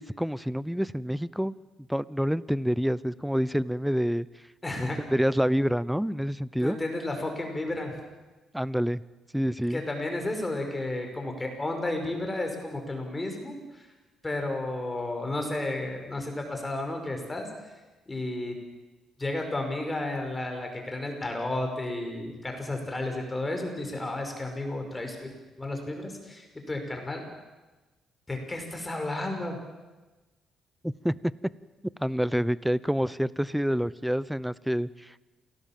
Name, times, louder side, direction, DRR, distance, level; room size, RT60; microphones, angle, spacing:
voice 1, 0.0-1.6 1.9-4.3 4.8-6.8 8.5-9.0 9.3-9.8 30.8-31.2 32.0-35.2, equal, ahead, 19 dB, 0.7 m, -27 dB
voice 2, 4.6-5.0 6.6-8.0 9.7-13.8 14.2-17.5 18.1-18.5 19.2-25.3 25.6-27.2 28.3-29.6, left 2 dB, 20° left, 3 dB, 5.6 m, -32 dB
28.0 x 18.0 x 7.5 m, 1.2 s
cardioid pair, 90°, 0 cm